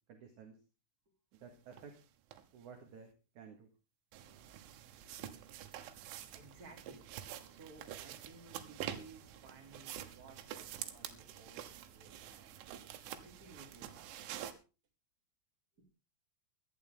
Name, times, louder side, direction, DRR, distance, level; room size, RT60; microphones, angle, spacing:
voice 1, 0.1-0.5 1.4-1.9 2.5-3.7, right 6 dB, 55° right, 4 dB, 2.5 m, -53 dB
sound 1, 1.7-1.8 2.3-2.4 4.1-14.5, right 11 dB, 85° right, 3.8 m, -47 dB
voice 2, 6.0-12.6 13.2-13.9 15.8-15.9, right 3 dB, 20° right, 2 dB, 3.4 m, -58 dB
18.0 x 12.0 x 3.7 m, 0.31 s
omnidirectional pair, 5.6 m